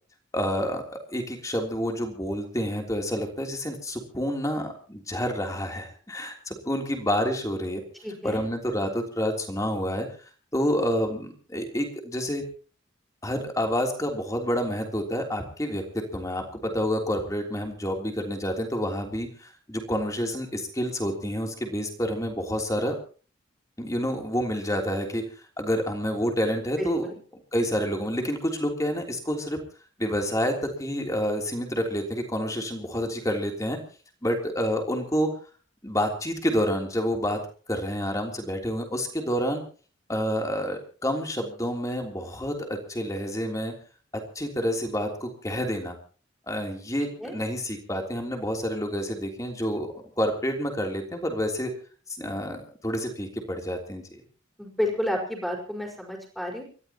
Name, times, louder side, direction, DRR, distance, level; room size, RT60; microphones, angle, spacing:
voice 1, 0.3-7.8 8.2-10.1 10.5-12.4 13.2-22.9 23.8-25.2 25.6-27.1 27.5-29.6 30.0-33.8 34.2-35.3 35.8-37.4 37.7-39.6 40.1-43.7 44.3-46.0 46.5-49.9 50.2-51.7 52.2-54.2, equal, 15° left, 3 dB, 3.3 m, -28 dB
voice 2, 8.0-8.4 26.8-27.2 47.2-47.3 54.6-56.6, left 1 dB, ahead, 0 dB, 5.0 m, -30 dB
29.5 x 14.0 x 3.0 m, 0.39 s
head